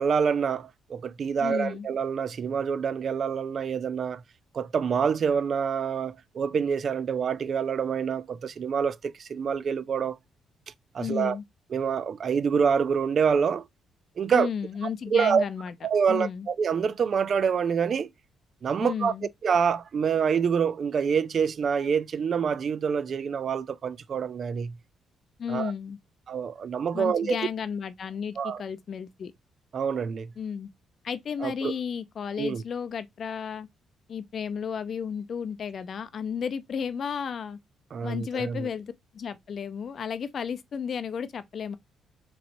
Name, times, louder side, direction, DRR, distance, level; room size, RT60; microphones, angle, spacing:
voice 1, 0.0-4.2 4.5-10.2 10.9-11.4 11.7-13.7 14.2-14.5 15.1-15.4 15.8-18.1 18.6-19.1 19.4-24.8 25.5-25.7 26.3-27.5 28.4-28.6 29.7-30.3 31.4-31.7 32.4-32.6 37.9-38.7, right 6 dB, 50° right, 0.3 m, -26 dB
voice 2, 1.4-1.9 11.0-11.4 14.3-15.7 16.1-16.5 18.8-19.3 25.4-26.0 26.9-29.3 30.4-30.7 31.0-33.7 34.1-37.6 38.0-41.8, left 7 dB, 55° left, 0.5 m, -33 dB
4.1 x 3.1 x 2.6 m
cardioid pair, 90°, 0 cm